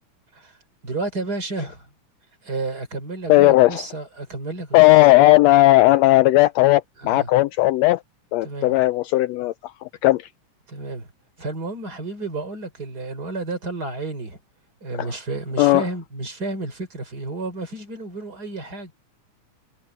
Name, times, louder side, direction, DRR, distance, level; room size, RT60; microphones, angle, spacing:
voice 1, 0.8-1.9 2.4-4.8 5.2-5.3 7.0-7.3 8.4-8.7 10.7-11.1 11.4-14.4 14.8-18.9, right 3 dB, 30° right, 4.0 m, -31 dB
voice 2, 3.3-3.8 4.7-8.0 8.3-10.3 15.0-15.1 15.6-15.8, left 18 dB, 90° left, 1.5 m, -16 dB
omnidirectional pair, 3.5 m